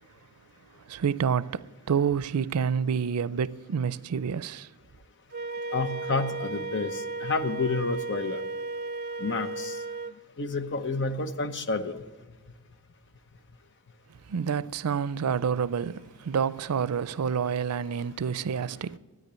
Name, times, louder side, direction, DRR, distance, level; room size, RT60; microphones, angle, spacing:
voice 1, 0.9-4.7 14.3-19.0, right 7 dB, 90° right, 0.4 m, -28 dB
Wind instrument woodwind instrument, 5.3-10.2, right 3 dB, 45° right, 0.6 m, -34 dB
voice 2, 5.7-8.4 9.2-9.8 10.4-12.0, left 4 dB, 55° left, 0.9 m, -30 dB
13.5 x 9.4 x 8.1 m
head